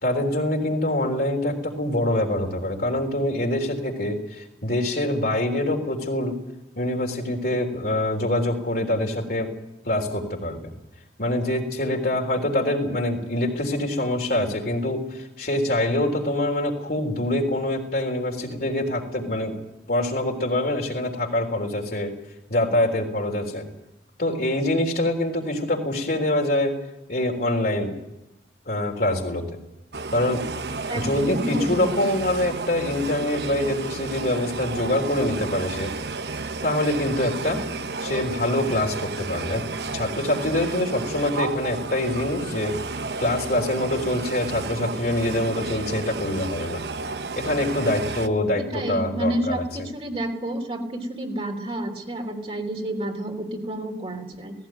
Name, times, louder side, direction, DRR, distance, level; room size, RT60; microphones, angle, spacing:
voice 1, 0.0-6.4 6.8-9.5 9.9-10.7 11.2-19.6 19.9-22.1 22.5-23.7 24.2-26.7 27.1-27.9 28.7-29.5 30.1-30.5 30.9-35.9 36.6-37.6 38.0-39.6 39.9-42.7 43.2-46.8 47.4-49.6, left 1 dB, 55° left, 2 dB, 3.7 m, -25 dB
sound 1, 29.9-48.3, right 3 dB, 65° right, 1.0 m, -32 dB
voice 2, 30.9-32.0 48.6-54.5, right 1 dB, 35° right, 3 dB, 3.2 m, -30 dB
18.0 x 16.5 x 9.2 m, 0.91 s
head